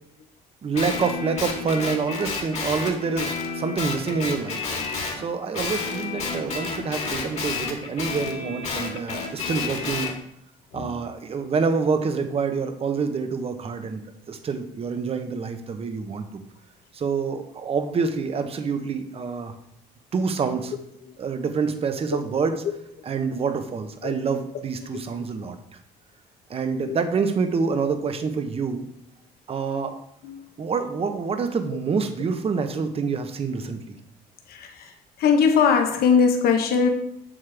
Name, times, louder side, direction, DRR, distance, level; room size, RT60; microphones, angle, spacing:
voice 1, 0.6-4.6 5.1-10.1 10.7-14.0 14.3-16.4 16.9-19.5 20.1-20.7 21.2-22.6 23.1-25.6 26.5-28.9 29.5-30.0 30.6-33.8, right 5 dB, 35° right, 7 dB, 0.9 m, -27 dB
Guitar, 0.7-5.2 5.5-10.1, left 4 dB, 40° left, 1.8 m, -30 dB
voice 2, 34.5-34.9 35.2-36.9, left 6 dB, 65° left, 5 dB, 1.1 m, -21 dB
7.4 x 6.4 x 3.4 m, 0.71 s
cardioid pair, 110°, 17 cm